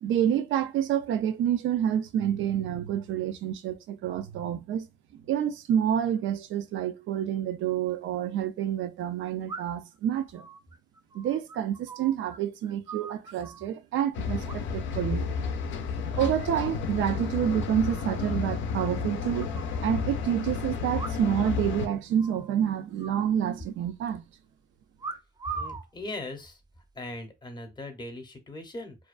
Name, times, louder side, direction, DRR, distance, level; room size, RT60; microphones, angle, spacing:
voice 1, 0.0-4.9 5.1-10.5 11.1-15.3 16.1-19.5 19.8-24.2, right 9 dB, 80° right, 0.4 m, -28 dB
sound 1, 7.7-7.8 9.5-9.9 10.3-12.4 12.6-13.7 14.5-15.0 15.3-15.7 16.0-16.6 16.9-17.0 17.2-17.3 17.6-17.7 18.0-18.1 18.8-19.8 20.9-21.5 21.8-21.9 22.2-22.5 23.0-23.9 25.0-25.9 26.6-27.0, right 4 dB, 20° right, 0.4 m, -41 dB
sound 2, 14.1-21.9, left 5 dB, 70° left, 0.5 m, -31 dB
voice 2, 25.5-26.6 26.9-29.1, left 2 dB, 20° left, 0.7 m, -39 dB
2.4 x 2.2 x 2.4 m
cardioid pair, 90°, 20 cm